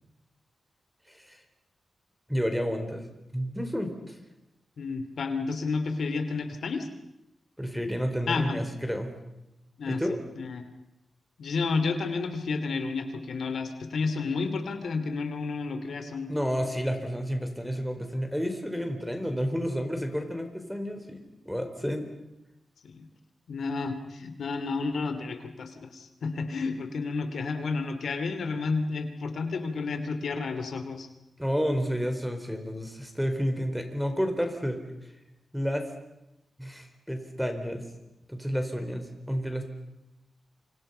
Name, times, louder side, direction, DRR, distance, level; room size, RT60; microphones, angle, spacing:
voice 1, 1.1-1.4 2.3-3.1 3.3-4.2 7.6-9.1 9.9-10.2 16.3-22.1 31.4-34.8 35.5-35.9 36.6-37.9 38.3-39.6, equal, ahead, 6 dB, 4.3 m, -30 dB
voice 2, 4.8-6.9 8.3-8.6 9.8-10.0 10.3-10.6 11.4-16.3 22.8-23.0 23.5-31.1, left 4 dB, 75° left, 8 dB, 2.7 m, -31 dB
28.5 x 26.5 x 5.6 m, 0.90 s
wide cardioid pair, 90°, 0 cm